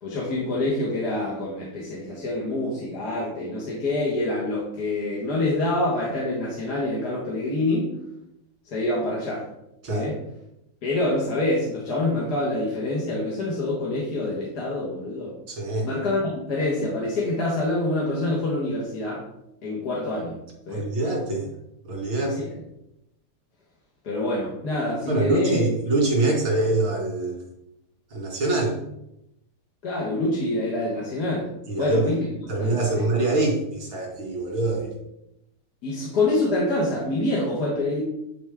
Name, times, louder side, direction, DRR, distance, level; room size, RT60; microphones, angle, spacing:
voice 1, 0.0-7.9 8.7-9.5 9.9-10.2 10.8-15.3 15.8-19.2 19.6-20.4 20.7-20.9 22.2-22.5 24.0-25.6 29.8-31.5 31.8-32.3 32.6-33.0 35.8-38.0, left 2 dB, 55° left, -6 dB, 1.9 m, -26 dB
voice 2, 15.5-15.9 20.7-21.5 21.8-22.4 25.1-27.4 28.1-28.8 31.7-32.1 32.5-34.9, right 2 dB, 85° right, -2 dB, 3.0 m, -24 dB
10.5 x 4.2 x 3.6 m, 0.84 s
omnidirectional pair, 2.1 m